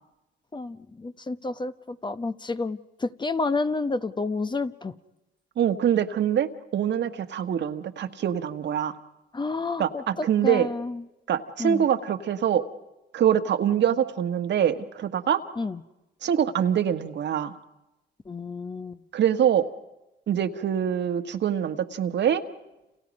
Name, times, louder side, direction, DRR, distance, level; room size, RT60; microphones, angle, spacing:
voice 1, 0.5-4.9 9.3-11.0 11.6-11.9 15.6-15.8 18.3-19.0, left 3 dB, 20° left, 11 dB, 0.9 m, -30 dB
voice 2, 5.6-9.0 9.8-10.7 11.3-12.6 13.1-15.4 16.2-17.5 19.1-19.7 20.3-22.4, right 9 dB, 60° right, 8 dB, 1.5 m, -24 dB
30.0 x 28.0 x 5.3 m, 0.98 s
cardioid pair, 90°, 20 cm